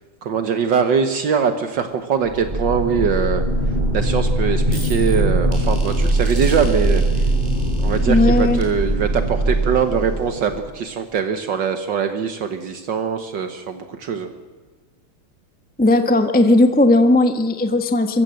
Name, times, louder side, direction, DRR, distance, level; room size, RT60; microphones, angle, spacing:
voice 1, 0.2-3.4 3.9-7.3 7.8-14.3, right 6 dB, 65° right, 8 dB, 1.7 m, -22 dB
sound 1, 2.2-10.7, right 1 dB, 20° right, 5.7 m, -21 dB
voice 2, 8.1-8.6 15.8-18.2, left 2 dB, 5° left, 7 dB, 0.9 m, -16 dB
23.5 x 15.5 x 7.7 m, 1.4 s
omnidirectional pair, 2.2 m